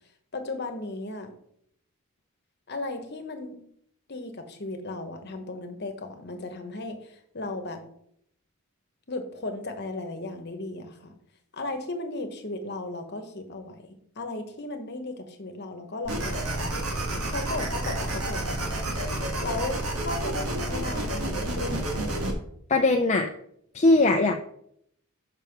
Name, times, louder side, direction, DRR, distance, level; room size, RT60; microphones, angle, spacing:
voice 1, 0.3-1.3 2.7-3.6 4.1-7.8 9.1-11.1 11.5-16.7 17.3-18.7 19.4-22.4, left 2 dB, 45° left, 6 dB, 1.1 m, -36 dB
sound 1, 16.0-22.3, right 1 dB, 80° right, 1.5 m, -30 dB
voice 2, 22.7-23.3 23.7-24.4, left 2 dB, 30° left, 5 dB, 0.4 m, -20 dB
5.7 x 5.4 x 5.9 m, 0.71 s
head